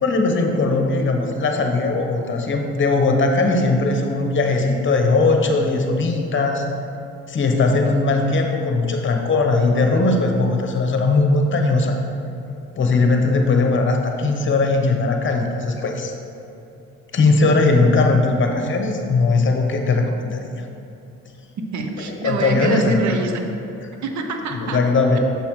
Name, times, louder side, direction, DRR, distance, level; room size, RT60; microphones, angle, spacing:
voice 1, 0.0-6.6 7.3-11.9 12.8-16.1 17.1-20.5 22.2-23.0 24.5-25.2, left 3 dB, 40° left, 3 dB, 0.9 m, -19 dB
voice 2, 21.7-23.4 24.0-24.8, right 3 dB, 70° right, 4 dB, 0.8 m, -25 dB
7.0 x 5.8 x 3.1 m, 2.8 s
cardioid pair, 90°, 30 cm